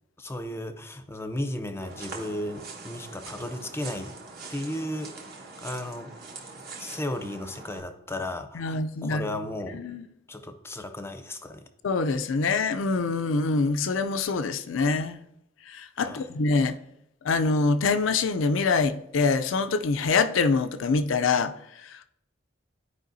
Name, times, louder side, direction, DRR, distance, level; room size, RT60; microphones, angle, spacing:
voice 1, 0.2-4.2 4.5-5.1 5.6-6.1 6.8-9.8 10.3-11.7 16.0-16.3, left 1 dB, 15° left, 0.6 m, -34 dB
sound 1, 1.8-7.8, right 3 dB, 55° right, 1.3 m, -43 dB
voice 2, 8.5-9.3 9.7-10.0 11.8-15.2 15.7-16.8 17.2-21.5 21.9-22.0, left 4 dB, 80° left, 0.5 m, -25 dB
12.5 x 4.8 x 2.6 m
head